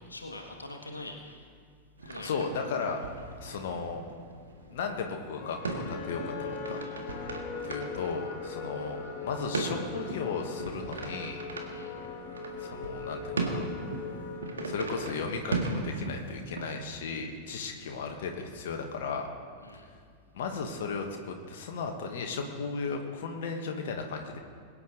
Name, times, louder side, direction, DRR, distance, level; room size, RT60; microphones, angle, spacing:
voice 1, 0.0-1.5 2.0-2.3 11.7-12.0 17.6-17.9 19.6-19.9, left 2 dB, 80° left, 2 dB, 1.6 m, -44 dB
voice 2, 2.0-3.0 3.4-4.0 4.7-6.8 7.6-11.4 12.6-13.6 14.6-19.3 20.3-24.4, left 5 dB, 55° left, 3 dB, 1.4 m, -35 dB
sound 1, 2.0-16.9, right 3 dB, 70° right, 1.8 m, -38 dB
sound 2, 5.4-15.6, left 4 dB, 35° left, 1.6 m, -40 dB
22.0 x 9.7 x 3.9 m, 2.1 s
figure-of-eight pair, 90°, 0 cm